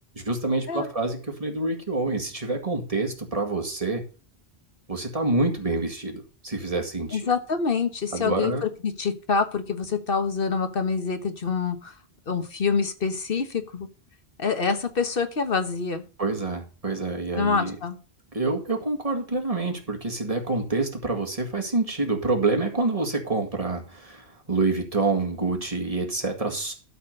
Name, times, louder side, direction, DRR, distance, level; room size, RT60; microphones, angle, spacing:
voice 1, 0.1-4.0 4.9-7.3 8.1-8.7 16.2-17.8 18.3-26.7, right 3 dB, 35° right, 3 dB, 2.1 m, -27 dB
voice 2, 7.1-11.9 12.3-13.9 14.4-16.0 17.3-18.0, left 5 dB, 60° left, 8 dB, 1.5 m, -26 dB
12.5 x 4.3 x 6.6 m, 0.37 s
omnidirectional pair, 1.1 m